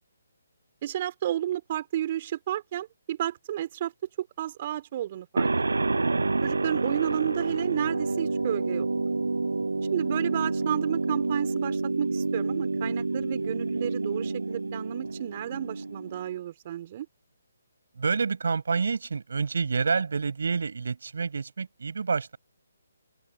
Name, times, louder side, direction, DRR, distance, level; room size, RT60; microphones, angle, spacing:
voice 1, 0.8-3.9 4.2-5.5 6.4-8.9 9.8-17.1, right 12 dB, 40° right, 4.6 m, -32 dB
sound 1, 5.4-16.2, right 3 dB, 90° right, 6.2 m, -28 dB
voice 2, 17.9-22.4, right 5 dB, 70° right, 7.3 m, -28 dB
open air
hypercardioid pair, 150°, 0 cm